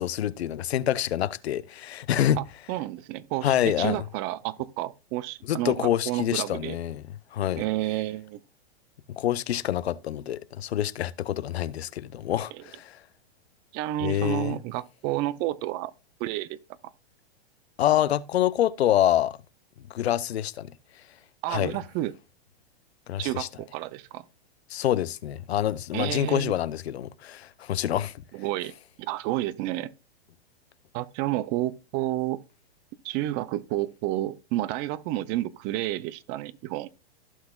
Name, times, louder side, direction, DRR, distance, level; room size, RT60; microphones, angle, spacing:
voice 1, 0.0-2.4 3.4-4.0 5.5-7.0 7.3-7.6 9.1-13.0 14.0-14.6 17.8-19.4 19.9-20.7 21.5-21.7 23.1-23.5 24.7-28.1, left 11 dB, 80° left, 0.7 m, -26 dB
voice 2, 2.7-6.8 7.6-8.4 12.5-12.6 13.7-15.9 16.2-16.6 21.4-22.1 23.2-24.2 25.9-26.5 28.3-29.9 30.9-32.4 33.0-37.0, right 15 dB, 30° right, 0.5 m, -30 dB
15.0 x 5.9 x 2.3 m
hypercardioid pair, 135°, 31 cm